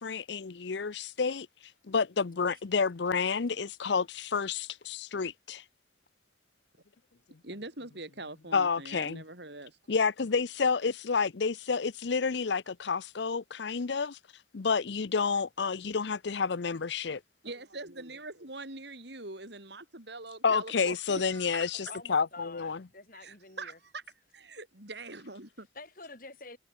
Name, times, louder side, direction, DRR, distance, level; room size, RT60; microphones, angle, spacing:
voice 1, 0.0-1.5 1.8-5.6 8.5-9.2 9.9-14.2 14.5-17.2 20.4-22.8, left 5 dB, 70° left, 0.6 m, -30 dB
voice 2, 7.4-9.8 17.4-21.8 23.1-24.0 24.3-25.7, right 2 dB, 65° right, 5.9 m, -43 dB
voice 3, 21.8-23.8 25.8-26.6, left 3 dB, 45° left, 7.1 m, -47 dB
head